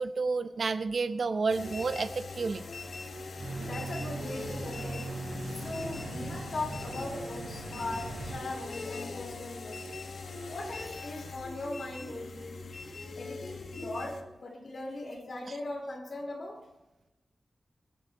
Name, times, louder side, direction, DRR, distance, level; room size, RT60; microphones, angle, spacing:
voice 1, 0.0-2.6, right 4 dB, 55° right, 10 dB, 0.7 m, -30 dB
sound 1, 1.5-14.2, left 3 dB, 70° left, 1.6 m, -41 dB
sound 2, 3.4-8.4, right 2 dB, 70° right, 4.5 m, -40 dB
voice 2, 3.6-5.1 5.5-9.8 10.5-12.6 13.1-16.6, left 2 dB, 55° left, 0 dB, 4.4 m, -39 dB
24.0 x 11.5 x 3.0 m, 0.99 s
wide cardioid pair, 160°, 0 cm